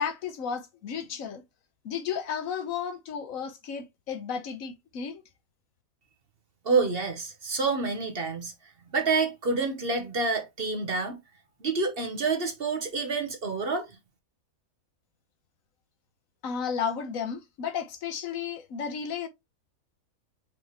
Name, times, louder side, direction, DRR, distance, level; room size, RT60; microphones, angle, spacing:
voice 1, 0.0-1.4 1.8-5.2 16.4-19.3, left 7 dB, 70° left, 1.2 m, -33 dB
voice 2, 6.6-8.5 8.9-11.2 11.6-13.9, right 4 dB, 45° right, 1.1 m, -28 dB
4.7 x 3.5 x 3.1 m
omnidirectional pair, 1.5 m